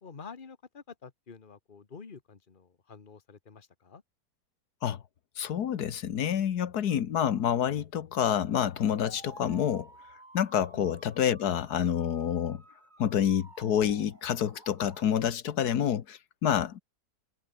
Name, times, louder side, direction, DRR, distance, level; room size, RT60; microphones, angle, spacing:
voice 1, 0.0-4.0 10.7-10.9, left 5 dB, 35° left, 1.6 m, -48 dB
voice 2, 5.4-9.9 10.3-12.6 13.0-16.8, left 9 dB, 90° left, 1.7 m, -28 dB
sound 1, 8.3-15.2, right 2 dB, 30° right, 3.2 m, -54 dB
omnidirectional pair, 1.6 m